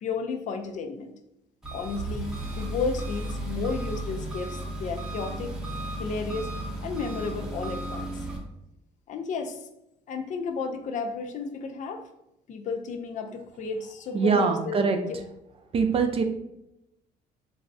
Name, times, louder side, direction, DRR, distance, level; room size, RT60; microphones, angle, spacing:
voice 1, 0.0-1.2 1.7-5.6 6.0-6.5 6.8-8.2 9.1-9.7 10.1-12.1 12.5-14.8 15.1-15.2, left 4 dB, 50° left, 6 dB, 0.4 m, -33 dB
Engine, 1.6-8.4, right 1 dB, 5° right, 0.7 m, -34 dB
voice 2, 14.1-15.0 15.7-16.2, right 5 dB, 35° right, 6 dB, 0.4 m, -23 dB
3.1 x 2.3 x 2.5 m, 0.85 s
cardioid pair, 110°, 17 cm